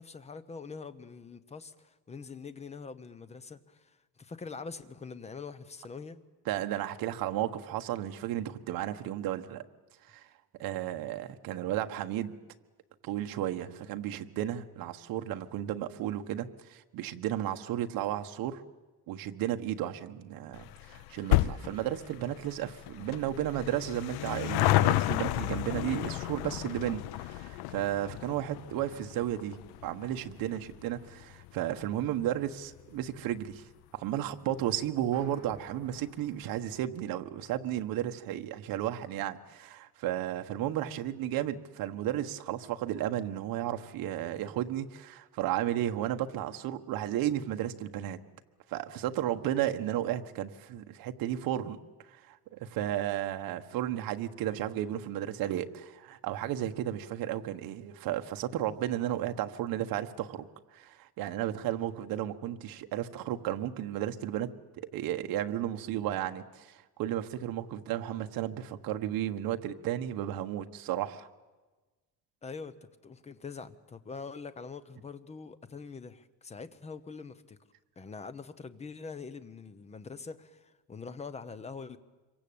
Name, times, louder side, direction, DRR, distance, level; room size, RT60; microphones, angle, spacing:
voice 1, 0.0-6.2 72.4-72.8 73.0-77.6 78.0-82.0, left 5 dB, 15° left, 13 dB, 0.9 m, -44 dB
voice 2, 6.5-9.6 10.1-10.3 10.6-12.3 13.0-18.6 19.1-33.6 33.9-48.2 48.7-51.8 52.1-64.5 64.8-71.3, right 12 dB, 65° right, 7 dB, 1.5 m, -33 dB
sound 1, 20.5-33.3 33.6-33.7 34.6-34.7 34.9-35.0 35.2-35.3, left 16 dB, 75° left, 0.8 m, -32 dB
sound 2, 35.1-37.6, equal, 10° right, 7.1 m, -57 dB
26.5 x 23.5 x 8.7 m, 1.2 s
cardioid pair, 170°, 38 cm